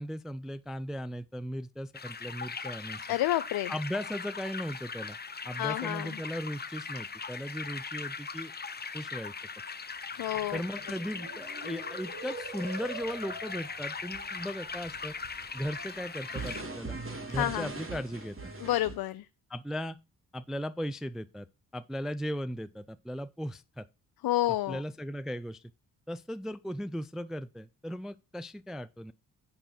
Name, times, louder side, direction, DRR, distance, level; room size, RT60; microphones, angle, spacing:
voice 1, 0.0-3.0 3.7-5.2 5.4-8.5 8.9-9.3 10.5-15.1 15.5-17.0 17.3-18.5 19.5-20.0 20.3-21.5 21.7-23.9 24.7-25.6 26.1-29.1, equal, ahead, 0.4 m, -37 dB
sound 1, 1.9-16.6, left 5 dB, 25° left, 0.7 m, -40 dB
voice 2, 3.1-3.7 5.6-6.2 10.2-10.6 17.4-17.7 18.6-19.2 24.2-24.8, left 15 dB, 60° left, 0.5 m, -29 dB
sound 2, 10.2-19.0, right 3 dB, 30° right, 2.3 m, -43 dB
7.0 x 5.5 x 5.8 m
hypercardioid pair, 40°, 41 cm